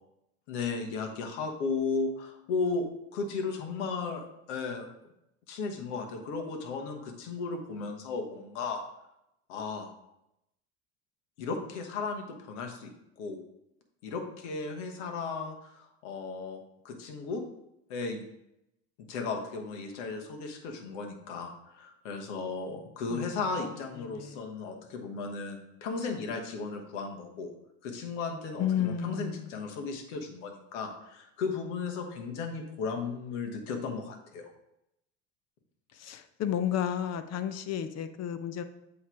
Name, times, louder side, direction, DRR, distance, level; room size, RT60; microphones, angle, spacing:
voice 1, 0.5-4.9 5.5-8.8 9.5-9.9 11.4-12.9 13.2-13.4 14.0-17.4 17.9-18.2 19.1-27.5 27.8-34.4, left 4 dB, 80° left, 4 dB, 1.2 m, -35 dB
voice 2, 23.1-23.4 24.0-24.4 28.6-29.6 35.9-38.6, left 9 dB, 45° left, 10 dB, 0.7 m, -32 dB
8.0 x 3.2 x 4.5 m, 0.83 s
hypercardioid pair, 75°, 36 cm